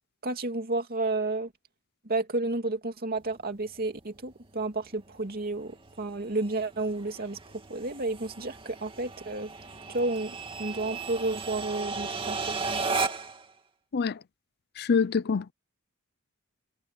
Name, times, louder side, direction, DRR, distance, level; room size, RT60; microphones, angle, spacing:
voice 1, 0.2-1.5 2.0-7.4 7.7-9.5 9.9-12.5, right 2 dB, 45° right, 2.6 m, -31 dB
sound 1, 3.2-13.4, right 4 dB, 25° right, 2.8 m, -36 dB
voice 2, 14.8-15.5, left 5 dB, 50° left, 0.5 m, -25 dB
head